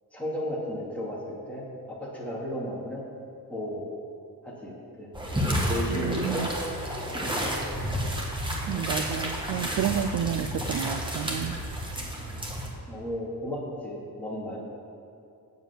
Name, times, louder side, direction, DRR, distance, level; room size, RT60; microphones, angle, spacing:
voice 1, 0.1-1.2 1.5-3.0 3.5-3.8 4.4-4.7 5.0-5.1 5.7-6.5 7.1-7.5 11.9-12.1 12.9-14.6, equal, 5° left, -5 dB, 2.5 m, -34 dB
sound 1, 5.1-12.7, equal, 10° right, 1.5 m, -31 dB
voice 2, 5.9-6.5 8.7-11.6, right 9 dB, 50° right, 8 dB, 0.4 m, -30 dB
9.1 x 7.2 x 7.2 m, 2.7 s
cardioid pair, 145°, 39 cm